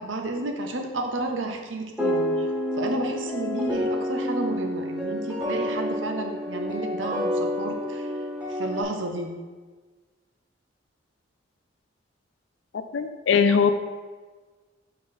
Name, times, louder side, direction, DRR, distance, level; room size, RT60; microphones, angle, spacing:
voice 1, 0.0-2.5 2.8-8.1 8.5-9.3, right 2 dB, 80° right, 4 dB, 0.8 m, -31 dB
sound 1, 2.0-8.8, left 1 dB, 10° right, 1.6 m, -28 dB
voice 2, 12.7-13.7, left 6 dB, 75° left, 10 dB, 0.4 m, -21 dB
5.1 x 4.6 x 4.1 m, 1.4 s
head